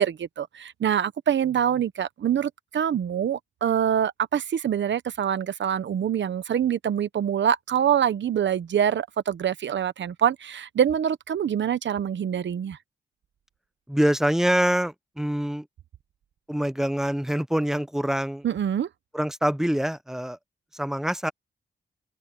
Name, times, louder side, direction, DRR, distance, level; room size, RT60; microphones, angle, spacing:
voice 1, 0.0-12.8 18.4-18.9, right 9 dB, 75° right, 1.0 m, -25 dB
voice 2, 13.9-15.7 16.5-18.5 19.1-20.4 20.7-21.3, equal, ahead, 0.7 m, -25 dB
open air
cardioid pair, 60°, 19 cm